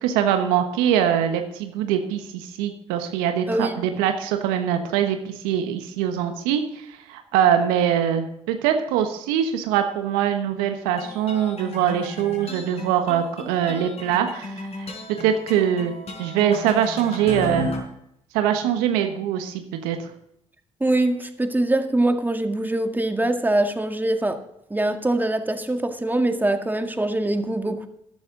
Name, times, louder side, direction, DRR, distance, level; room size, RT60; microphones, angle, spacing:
voice 1, 0.0-14.9 15.2-15.9 16.2-17.7 18.3-20.1, right 9 dB, 80° right, 6 dB, 1.3 m, -23 dB
voice 2, 3.5-3.8 20.8-24.4 24.7-27.9, right 1 dB, 10° right, 6 dB, 1.8 m, -23 dB
sound 1, 11.0-17.8, left 2 dB, 45° left, 5.0 m, -35 dB
14.0 x 12.0 x 3.9 m, 0.78 s
hypercardioid pair, 45°, 15 cm